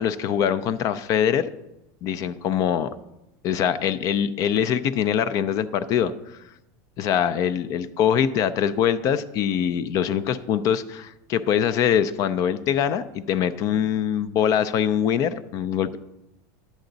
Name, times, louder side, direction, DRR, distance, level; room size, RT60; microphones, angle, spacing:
voice 1, 0.0-1.5 2.0-2.9 3.4-6.1 7.0-16.0, left 9 dB, 35° left, 13 dB, 0.4 m, -23 dB
10.5 x 8.0 x 3.9 m, 0.91 s
supercardioid pair, 160°, 10 cm